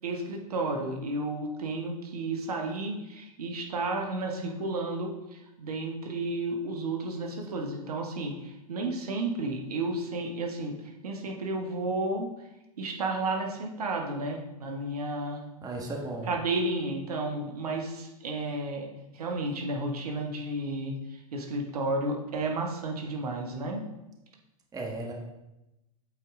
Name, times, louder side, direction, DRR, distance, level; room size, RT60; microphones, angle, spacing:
voice 1, 0.0-10.8 11.0-12.3 12.8-15.4 16.3-18.9 19.1-20.9 21.3-23.8, right 2 dB, 75° right, 2 dB, 1.1 m, -32 dB
voice 2, 15.6-16.3 24.7-25.1, right 2 dB, 20° right, -1 dB, 1.6 m, -35 dB
8.3 x 4.5 x 3.6 m, 0.94 s
hypercardioid pair, 95°, 20 cm